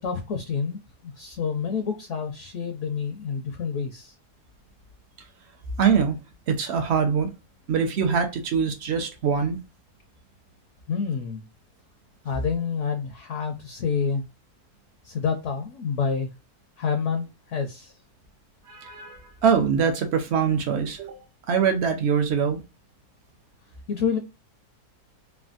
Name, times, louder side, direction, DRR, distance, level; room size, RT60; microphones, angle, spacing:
voice 1, 0.0-4.1 10.9-11.4 12.2-14.2 15.0-16.3 16.8-17.9 23.9-24.2, left 6 dB, 70° left, 0.7 m, -28 dB
voice 2, 5.8-6.2 6.5-7.3 7.7-9.6 18.7-21.2 21.5-22.6, right 6 dB, 70° right, 0.6 m, -23 dB
3.3 x 2.2 x 2.4 m
omnidirectional pair, 1.7 m